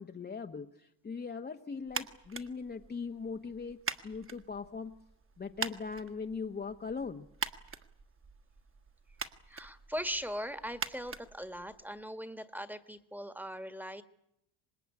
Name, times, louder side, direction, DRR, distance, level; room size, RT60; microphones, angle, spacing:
voice 1, 0.0-5.0 5.4-7.3, left 5 dB, 20° left, 4 dB, 1.1 m, -40 dB
sound 1, 1.9-12.1, right 5 dB, 25° right, 1.6 m, -44 dB
voice 2, 9.5-14.0, equal, 5° right, 11 dB, 1.6 m, -40 dB
26.0 x 20.0 x 9.6 m, 0.80 s
cardioid pair, 110°, 49 cm